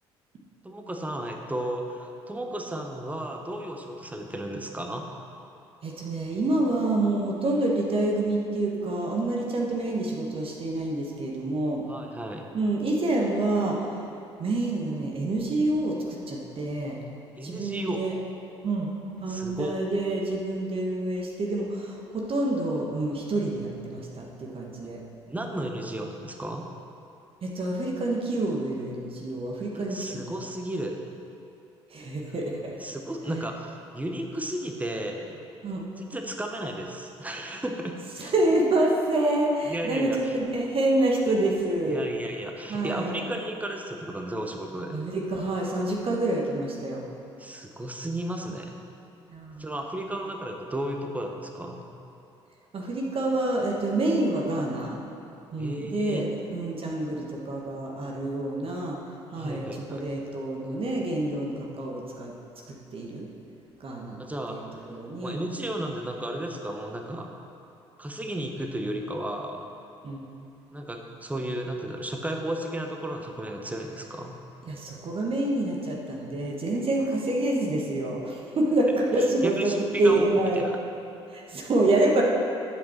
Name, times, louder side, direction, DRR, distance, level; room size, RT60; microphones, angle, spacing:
voice 1, 0.6-5.1 11.9-12.4 17.4-18.0 19.3-19.7 25.3-26.7 29.7-31.0 32.8-35.4 36.1-38.3 39.7-40.4 41.9-45.0 47.4-48.7 49.6-51.8 55.6-56.2 59.4-60.0 64.2-64.6 65.2-67.3 68.0-69.7 70.7-74.4 79.4-80.3, right 1 dB, 10° right, 2 dB, 1.2 m, -33 dB
voice 2, 5.8-11.8 12.5-14.0 14.4-17.0 17.4-18.1 18.6-18.9 19.2-25.0 27.4-30.2 31.9-32.7 35.6-35.8 38.2-42.0 42.7-43.3 44.9-47.1 49.3-49.7 52.7-55.0 55.5-59.0 59.3-62.3 62.7-63.3 63.8-64.2 64.5-65.4 70.0-70.2 74.7-79.7 80.0-80.7 81.3-82.2, right 2 dB, 40° right, -1 dB, 1.4 m, -27 dB
10.5 x 7.8 x 4.5 m, 2.8 s
figure-of-eight pair, 50°, 15 cm